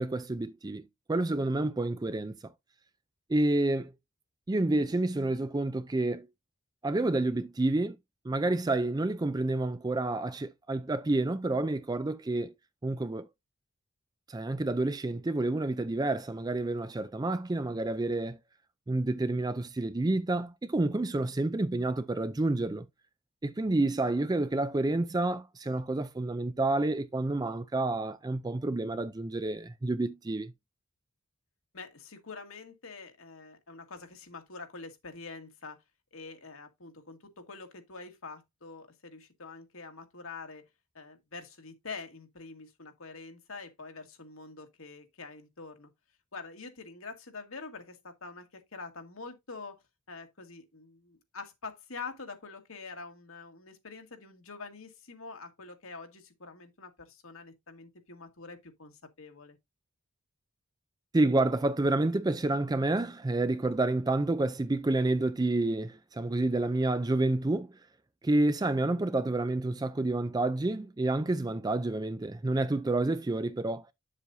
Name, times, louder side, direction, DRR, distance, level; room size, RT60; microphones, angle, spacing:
voice 1, 0.0-2.5 3.3-3.9 4.5-6.3 6.8-8.0 8.2-12.5 12.8-13.3 14.3-18.4 18.9-22.9 23.4-30.5 61.1-67.7 68.2-73.9, right 2 dB, 20° right, 0.4 m, -29 dB
voice 2, 31.7-35.8 36.1-40.7 40.9-45.9 46.3-49.8 50.1-59.6, left 4 dB, 70° left, 1.8 m, -45 dB
8.2 x 7.4 x 2.7 m
head